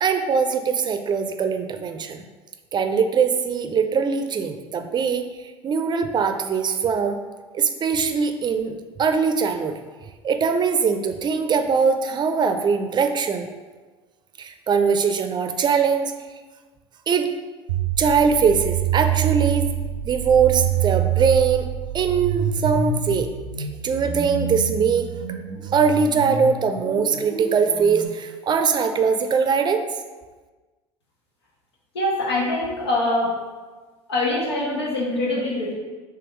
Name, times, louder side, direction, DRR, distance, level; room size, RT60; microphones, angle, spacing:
voice 1, 0.0-2.3 2.7-7.2 7.5-9.8 10.2-13.5 14.4-16.1 17.1-17.3 18.0-19.7 20.0-21.7 21.9-23.3 23.6-25.1 25.7-29.8, right 6 dB, 35° right, 7 dB, 0.5 m, -21 dB
sound 1, 17.7-28.0, right 9 dB, 90° right, 0.6 m, -26 dB
voice 2, 31.9-33.4 34.1-35.7, left 2 dB, 85° left, -4 dB, 1.3 m, -23 dB
3.4 x 3.4 x 4.5 m, 1.3 s
hypercardioid pair, 70°, 14 cm